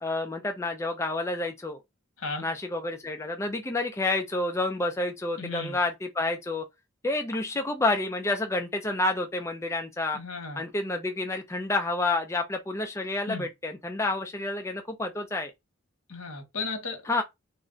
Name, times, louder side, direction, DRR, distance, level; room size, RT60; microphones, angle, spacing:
voice 1, 0.0-1.8 2.4-6.6 7.0-10.2 10.6-15.5 17.1-17.2, left 2 dB, 15° left, 0.3 m, -29 dB
voice 2, 5.4-5.8 10.1-10.6 13.3-13.5 16.1-17.0, left 3 dB, 85° left, 1.1 m, -35 dB
2.4 x 2.1 x 3.6 m
head